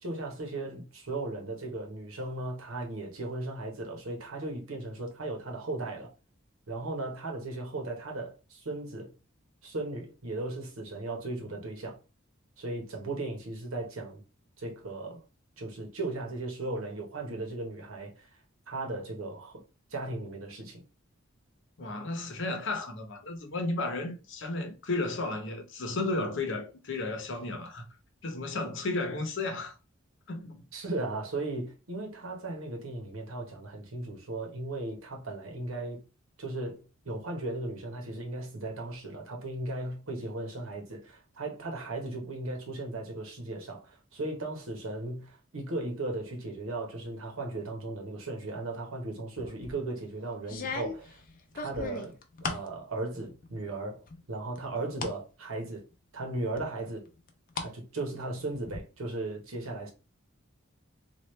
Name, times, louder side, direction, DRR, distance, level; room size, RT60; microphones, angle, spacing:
voice 1, 0.0-6.1 6.7-9.1 9.6-12.0 12.6-14.2 14.6-15.2 15.6-18.3 18.7-19.6 19.9-20.8 30.7-36.0 36.4-51.2 51.5-55.8 56.1-57.1 57.5-59.9, right 2 dB, 85° right, 1.1 m, -36 dB
voice 2, 21.8-27.9 28.2-29.7 30.3-30.6, left 2 dB, 65° left, 0.9 m, -33 dB
sound 1, 49.4-49.8 50.4-52.7 53.1-53.7 54.1-55.2 55.6-55.7 56.6-57.7 58.0-58.8, left 4 dB, 40° left, 0.5 m, -38 dB
3.1 x 2.5 x 3.1 m
head